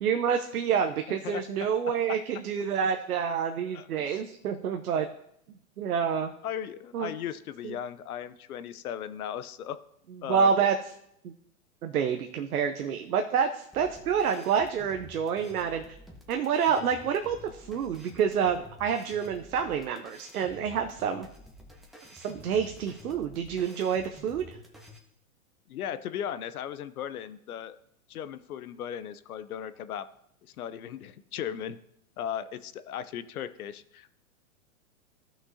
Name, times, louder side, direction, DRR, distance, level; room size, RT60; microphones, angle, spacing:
voice 1, 0.0-5.1 5.8-6.3 6.9-7.1 7.6-7.7 10.3-10.7 11.2-11.3 11.8-16.0 16.3-21.3 22.1-24.6, right 7 dB, 80° right, 5 dB, 0.8 m, -28 dB
voice 2, 1.1-1.4 3.7-4.2 6.4-9.8 10.2-10.7 25.7-27.8 28.1-30.1 30.4-31.8 32.2-34.1, left 9 dB, 75° left, 14 dB, 0.8 m, -37 dB
sound 1, 13.7-25.0, left 1 dB, ahead, 1.0 m, -50 dB
15.0 x 6.0 x 2.8 m, 0.76 s
hypercardioid pair, 125°, 44 cm